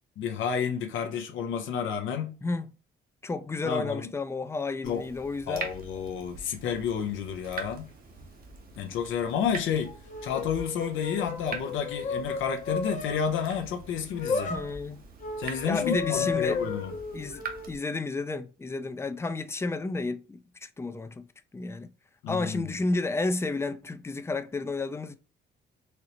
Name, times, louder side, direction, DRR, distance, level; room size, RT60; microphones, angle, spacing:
voice 1, 0.2-2.4 3.6-4.1 4.8-5.0 5.5-7.9 8.8-10.0 10.2-14.5 15.4-16.9 22.2-22.6, left 7 dB, 75° left, 0.6 m, -30 dB
voice 2, 2.4-2.7 3.2-5.7 14.5-15.0 15.7-16.6 17.1-21.3 21.5-21.9 22.3-25.1, left 3 dB, 15° left, 0.3 m, -31 dB
Water tap faucet / Drip, 4.8-17.8, right 4 dB, 50° right, 0.8 m, -44 dB
sound 1, 9.6-13.2 14.1-14.7 15.2-17.7, left 4 dB, 40° left, 0.7 m, -33 dB
4.1 x 2.0 x 2.8 m
cardioid pair, 90°, 20 cm